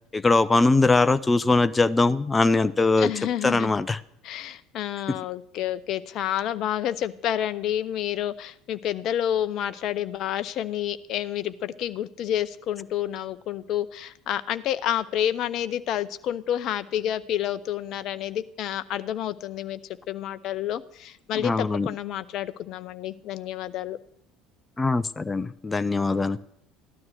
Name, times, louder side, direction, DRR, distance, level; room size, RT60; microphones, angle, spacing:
voice 1, 0.1-3.1 3.4-4.0 5.1-5.2 21.4-21.9 24.8-26.4, left 3 dB, 20° left, 0.7 m, -21 dB
voice 2, 3.0-3.7 4.2-19.8 20.1-24.0, left 11 dB, 50° left, 0.7 m, -29 dB
15.0 x 12.5 x 6.5 m
figure-of-eight pair, 60°, 0 cm